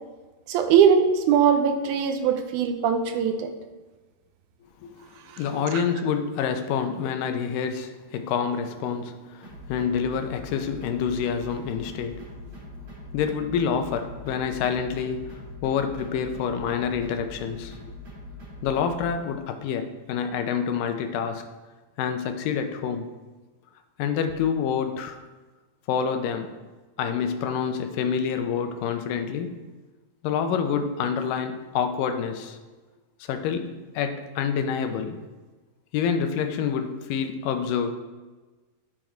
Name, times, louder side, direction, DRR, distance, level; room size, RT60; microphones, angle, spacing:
voice 1, 0.5-3.5 5.7-5.8, right 7 dB, 75° right, 7 dB, 1.9 m, -21 dB
voice 2, 5.4-12.3 13.1-17.8 18.6-21.4 22.0-23.1 24.0-25.2 25.9-26.6 27.0-29.6 30.2-32.6 33.2-35.2 35.9-37.9, left 7 dB, 80° left, 7 dB, 2.3 m, -27 dB
sound 1, 9.4-19.1, left 2 dB, 40° right, 2.7 m, -42 dB
11.5 x 4.6 x 4.4 m, 1.3 s
omnidirectional pair, 4.0 m